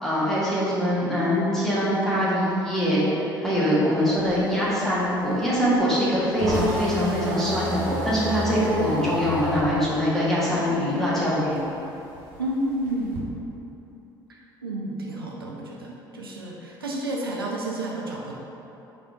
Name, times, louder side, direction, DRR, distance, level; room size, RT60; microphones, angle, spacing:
voice 1, 0.0-11.6, equal, 5° left, -9 dB, 1.4 m, -23 dB
sound 1, 4.0-11.1 11.4-13.2, right 1 dB, 65° right, 0.7 m, -31 dB
voice 2, 12.4-13.3 14.3-18.3, right 1 dB, 85° right, -2 dB, 0.4 m, -31 dB
4.7 x 3.3 x 2.6 m, 2.9 s
figure-of-eight pair, 55°, 12 cm